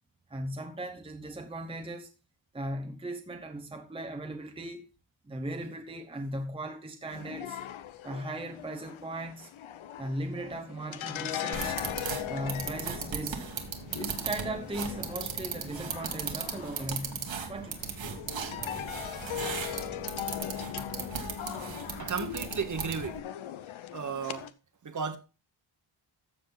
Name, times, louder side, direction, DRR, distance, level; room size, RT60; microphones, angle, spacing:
voice 1, 0.3-2.1 2.5-4.9 5.2-7.6 8.0-9.5 10.0-11.8 12.3-13.4 14.0-18.0, right 1 dB, 10° right, 0.9 m, -38 dB
sound 1, 7.1-24.5, left 11 dB, 80° left, 0.9 m, -40 dB
sound 2, 11.5-23.2, right 6 dB, 65° right, 1.9 m, -37 dB
voice 2, 22.0-23.2 23.9-24.5 24.8-25.2, right 6 dB, 40° right, 1.2 m, -34 dB
13.0 x 7.3 x 4.0 m
wide cardioid pair, 175°, 48 cm